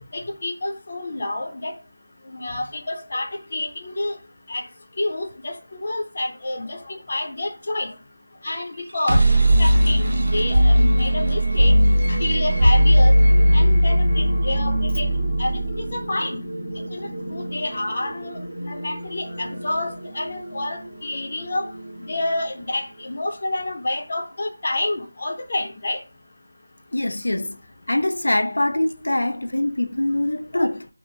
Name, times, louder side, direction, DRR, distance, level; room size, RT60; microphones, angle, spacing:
voice 1, 0.1-1.7 2.3-4.1 4.5-4.6 5.0-7.9 8.4-9.2 9.6-11.7 12.1-13.1 13.5-16.4 16.9-21.7 22.0-26.0 30.5-30.7, left 2 dB, 40° left, 0.6 m, -28 dB
sound 1, 8.8-22.6, equal, 50° right, 0.8 m, -20 dB
voice 2, 26.9-27.6 27.9-30.9, left 1 dB, 85° left, 0.3 m, -23 dB
2.7 x 2.1 x 2.8 m
figure-of-eight pair, 175°, 0 cm